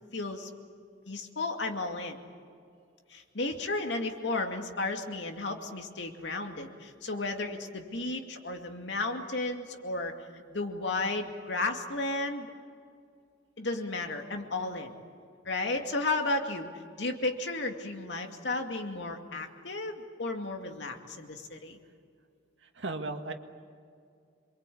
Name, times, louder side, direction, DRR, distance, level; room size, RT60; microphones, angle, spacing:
voice 1, 0.1-0.5 1.1-2.2 3.1-10.1 10.5-12.5 13.6-14.9 15.5-16.7 17.0-21.8, left 2 dB, 75° left, 4 dB, 2.4 m, -33 dB
voice 2, 22.6-23.3, right 2 dB, 80° right, 5 dB, 1.9 m, -36 dB
27.5 x 23.0 x 8.6 m, 2.3 s
head